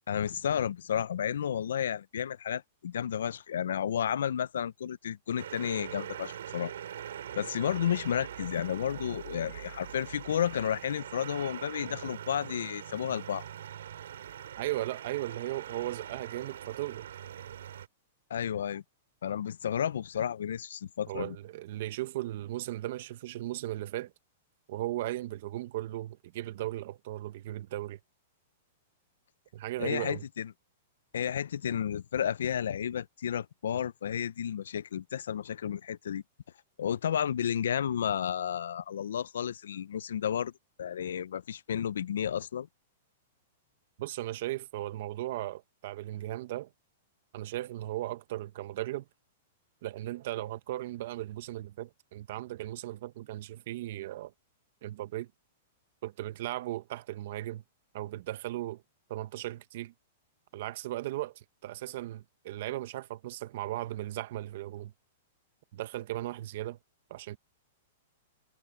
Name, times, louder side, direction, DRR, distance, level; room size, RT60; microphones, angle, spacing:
voice 1, 0.1-6.7 7.4-13.4 18.3-18.8 19.2-21.4 29.8-30.5 31.1-36.2 36.8-40.5 40.8-42.7, left 9 dB, 85° left, 0.5 m, -32 dB
sound 1, 5.4-17.9, right 10 dB, 85° right, 2.7 m, -43 dB
voice 2, 14.6-17.1 21.1-24.1 24.7-28.0 29.5-30.2 44.0-46.7 47.3-49.0 49.8-54.3 54.8-55.3 56.0-57.6 57.9-58.8 59.1-59.9 60.5-64.9 65.7-66.8 67.1-67.4, right 15 dB, 60° right, 1.3 m, -37 dB
hypercardioid pair, 140°, 0 cm